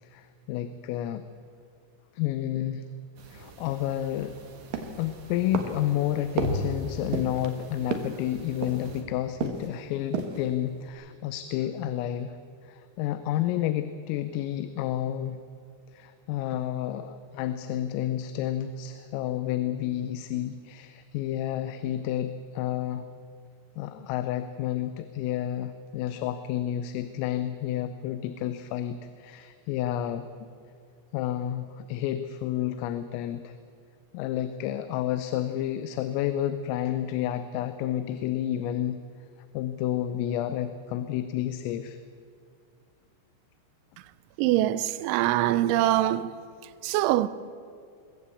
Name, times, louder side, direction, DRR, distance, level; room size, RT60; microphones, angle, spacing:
voice 1, 0.0-1.2 2.1-2.8 3.3-4.4 5.0-12.4 12.6-15.4 15.9-23.1 23.8-30.3 31.1-33.5 34.1-39.0 39.5-42.0, left 11 dB, 90° left, 3.4 m, -30 dB
sound 1, 3.2-9.0, equal, 50° right, 2.4 m, -40 dB
sound 2, 4.7-5.1 5.5-5.9 6.4-6.7 7.1-7.5 7.9-8.2 8.6-9.0 9.4-9.8 10.0-10.5 10.9-11.0, right 6 dB, 65° right, 2.2 m, -32 dB
voice 2, 44.4-46.3 46.8-47.3, right 14 dB, 85° right, 2.7 m, -23 dB
21.5 x 15.0 x 8.5 m
omnidirectional pair, 5.8 m